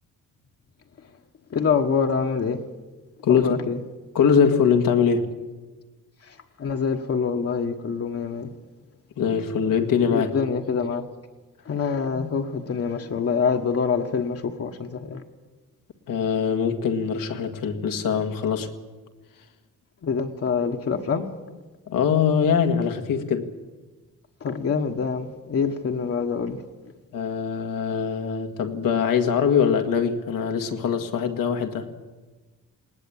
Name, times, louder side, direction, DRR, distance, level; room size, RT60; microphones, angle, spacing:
voice 1, 1.5-2.6 3.3-3.8 6.2-8.5 10.1-11.0 11.6-15.2 20.0-21.3 24.4-26.6, left 5 dB, 45° left, 1.3 m, -25 dB
voice 2, 3.2-3.5 4.2-5.3 9.2-10.4 12.1-12.3 16.1-18.7 21.9-23.5 27.1-31.9, left 7 dB, 90° left, 1.9 m, -22 dB
19.5 x 19.0 x 8.6 m
wide cardioid pair, 155°, 32 cm